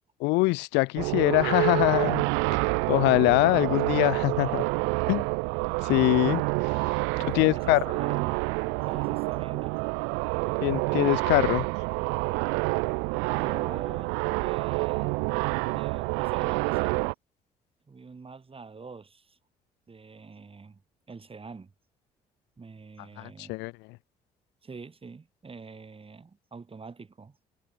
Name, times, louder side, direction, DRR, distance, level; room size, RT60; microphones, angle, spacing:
voice 1, 0.2-2.3 2.9-4.7 5.1-5.3 5.8-6.9 7.2-7.8 10.6-11.7 23.2-24.0, left 24 dB, 60° left, 0.7 m, -24 dB
sound 1, 1.0-17.1, right 34 dB, 65° right, 2.4 m, -28 dB
voice 2, 7.1-8.4 8.8-9.8 13.3-15.2 15.7-17.1 17.9-19.4 19.9-20.8 21.1-21.7 22.6-23.6 24.6-27.4, right 4 dB, 30° right, 6.5 m, -45 dB
figure-of-eight pair, 50°, 20 cm